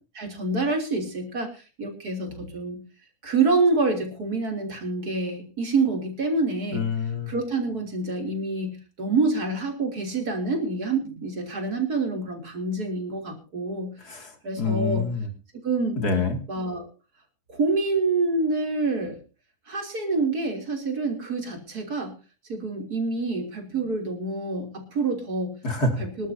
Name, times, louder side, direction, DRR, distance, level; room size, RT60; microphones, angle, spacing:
voice 1, 0.1-2.8 3.2-6.9 7.3-15.1 15.6-16.0 16.5-16.9 17.5-19.2 19.7-22.1 22.5-25.6 26.0-26.3, right 3 dB, 90° right, 2 dB, 4.1 m, -27 dB
voice 2, 6.7-7.3 14.0-14.3 14.6-15.3 16.0-16.4 25.6-26.1, left 3 dB, 90° left, 4 dB, 3.2 m, -26 dB
25.5 x 12.0 x 2.8 m, 0.33 s
omnidirectional pair, 1.6 m